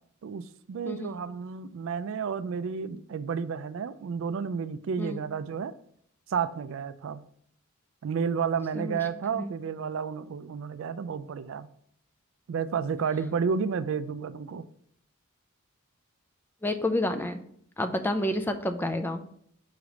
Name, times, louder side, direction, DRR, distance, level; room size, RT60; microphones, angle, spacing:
voice 1, 0.2-5.7 6.3-7.2 8.0-11.7 12.5-14.7, right 6 dB, 65° right, 13 dB, 0.3 m, -31 dB
voice 2, 0.9-1.2 5.0-5.2 8.8-9.0 9.3-9.5 16.6-17.4 17.8-19.2, left 1 dB, 10° left, 8 dB, 0.4 m, -29 dB
4.8 x 4.0 x 4.9 m, 0.67 s
head